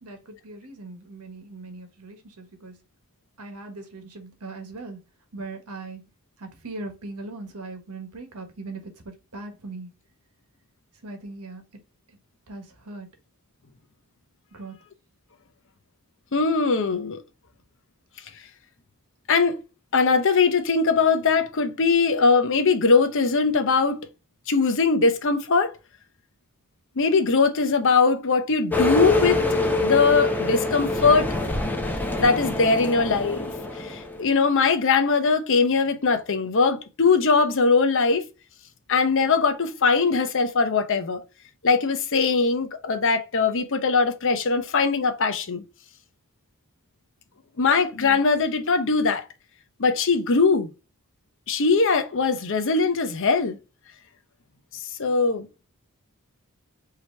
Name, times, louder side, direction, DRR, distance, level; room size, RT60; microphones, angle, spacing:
voice 1, 0.0-2.8 3.4-5.0 5.3-6.1 6.4-9.9 11.0-11.6 12.1-12.2 12.5-13.1 14.5-14.8 47.6-47.8, right 3 dB, 90° right, 1.3 m, -39 dB
voice 2, 16.3-17.2 19.3-19.6 19.9-24.0 24.5-25.7 27.0-29.5 29.8-31.3 32.2-38.2 38.9-41.2 41.6-45.6 47.6-49.3 49.8-50.7 51.5-53.6 55.0-55.5, left 4 dB, 60° left, 0.7 m, -21 dB
Truck-Uphill, 28.7-34.3, left 2 dB, 10° left, 0.6 m, -25 dB
4.9 x 2.9 x 3.2 m
head